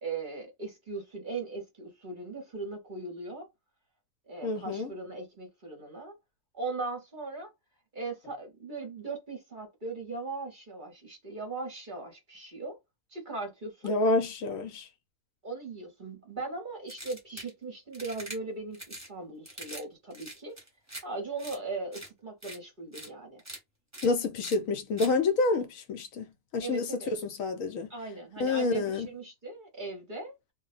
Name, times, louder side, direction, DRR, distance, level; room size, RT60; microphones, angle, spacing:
voice 1, 0.0-3.5 4.3-6.1 6.5-7.5 7.9-12.8 13.1-13.9 15.4-20.6 21.0-23.4 26.6-27.1 27.9-30.3, right 3 dB, 40° right, 0.8 m, -39 dB
voice 2, 4.4-4.9 13.8-14.9 24.0-27.9 28.4-29.1, left 3 dB, 70° left, 1.0 m, -28 dB
sound 1, 16.9-17.5 17.9-18.4 18.7-19.1 19.4-19.8 20.1-21.0 21.4-21.6 21.9-22.1 22.4-22.6 22.9-23.1 23.4-23.6 23.9-24.1 24.4-24.6 25.0-25.1, right 1 dB, 15° right, 1.0 m, -43 dB
2.4 x 2.1 x 3.9 m
omnidirectional pair, 1.5 m